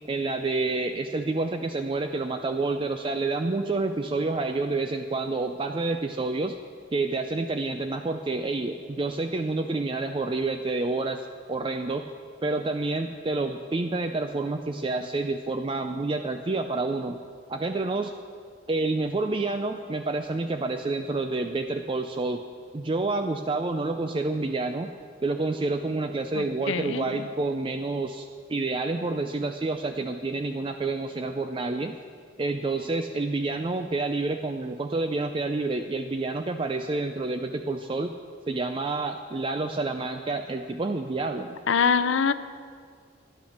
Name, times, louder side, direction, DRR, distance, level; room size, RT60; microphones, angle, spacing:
voice 1, 0.1-6.6 6.9-11.2 11.5-12.1 12.4-17.2 17.5-18.1 18.7-22.4 22.7-24.9 25.2-31.9 32.4-38.1 38.5-41.6, right 3 dB, 25° right, 6 dB, 0.4 m, -28 dB
voice 2, 26.3-27.0 41.7-42.3, left 6 dB, 85° left, 13 dB, 0.5 m, -24 dB
11.5 x 10.5 x 6.5 m, 2.1 s
head